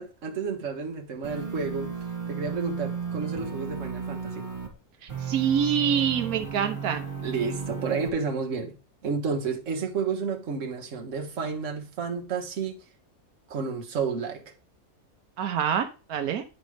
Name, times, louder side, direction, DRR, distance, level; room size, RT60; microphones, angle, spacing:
voice 1, 0.0-1.9 2.3-4.5 7.2-8.8 9.0-12.8 13.5-14.4, right 5 dB, 60° right, 1.6 m, -31 dB
sound 1, 1.2-4.7 5.1-8.1, right 6 dB, 30° right, 2.4 m, -34 dB
voice 2, 5.2-7.0 15.4-16.4, right 8 dB, 90° right, 1.3 m, -26 dB
10.5 x 5.2 x 3.3 m
omnidirectional pair, 1.5 m